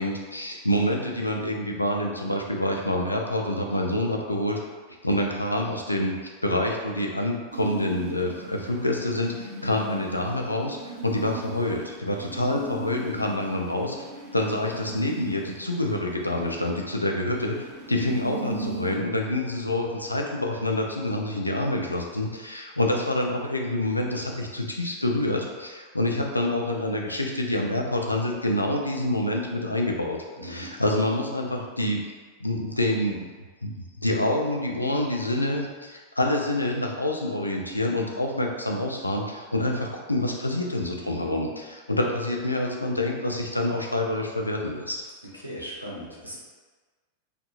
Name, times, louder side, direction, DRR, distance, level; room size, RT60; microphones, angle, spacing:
voice 1, 0.0-4.6 5.0-6.2 6.4-14.0 14.3-32.0 32.4-33.3 33.6-33.7 34.0-45.0, left 1 dB, 85° left, 1 dB, 0.3 m, -27 dB
sound 1, 7.5-19.0, right 2 dB, 40° right, 1.0 m, -39 dB
voice 2, 30.4-30.7 45.3-46.4, equal, 90° right, -3 dB, 0.5 m, -38 dB
2.6 x 2.4 x 2.3 m, 1.4 s
figure-of-eight pair, 90°, 0 cm